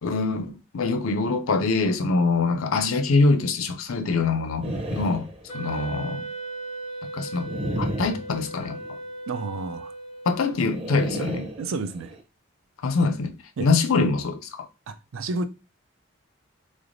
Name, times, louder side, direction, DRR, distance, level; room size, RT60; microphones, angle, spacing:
voice 1, 0.0-5.3 5.5-6.3 7.1-7.5 7.8-8.8 10.3-11.5 12.8-13.3 13.6-14.7, left 3 dB, 85° left, 0.5 m, -24 dB
sound 1, 4.6-6.0 7.4-8.9 10.7-12.2, right 1 dB, 30° right, 0.6 m, -33 dB
Wind instrument woodwind instrument, 5.5-10.7, right 2 dB, 30° left, 0.3 m, -37 dB
voice 2, 9.3-9.9 11.6-12.2 13.6-13.7 14.9-15.5, right 3 dB, 75° right, 0.4 m, -31 dB
3.8 x 3.2 x 2.5 m
head